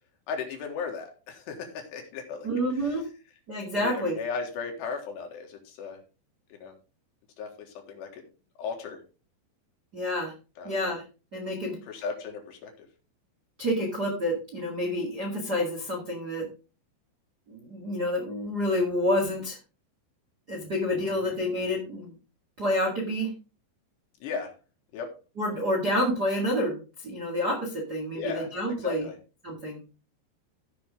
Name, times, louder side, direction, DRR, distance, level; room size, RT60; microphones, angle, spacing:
voice 1, 0.3-2.5 3.7-6.0 6.5-6.7 7.4-8.2 8.6-9.0 10.6-10.8 11.9-12.9 21.0-21.3 24.2-24.5 24.9-25.1 28.1-28.5 28.8-29.2, left 5 dB, 70° left, 3 dB, 3.7 m, -36 dB
voice 2, 2.4-3.0 3.5-4.1 9.9-10.3 10.6-11.0 11.3-11.8 13.6-16.5 17.5-19.6 20.5-22.1 22.6-23.3 25.4-29.1 29.4-29.8, left 1 dB, 45° right, -2 dB, 1.3 m, -28 dB
15.5 x 5.8 x 3.6 m, 0.33 s
omnidirectional pair, 5.4 m